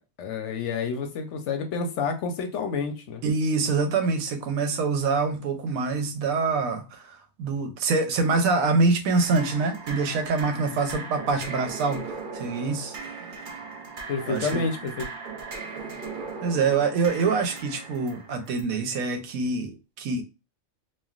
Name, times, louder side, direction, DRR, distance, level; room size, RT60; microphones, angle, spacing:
voice 1, 0.2-3.2 14.1-15.1, left 5 dB, 70° left, 0.8 m, -29 dB
voice 2, 3.2-12.9 14.3-14.6 16.4-20.2, right 4 dB, 90° right, 1.0 m, -25 dB
sound 1, 9.1-18.6, right 4 dB, 55° right, 0.6 m, -38 dB
3.2 x 2.2 x 2.3 m
omnidirectional pair, 1.4 m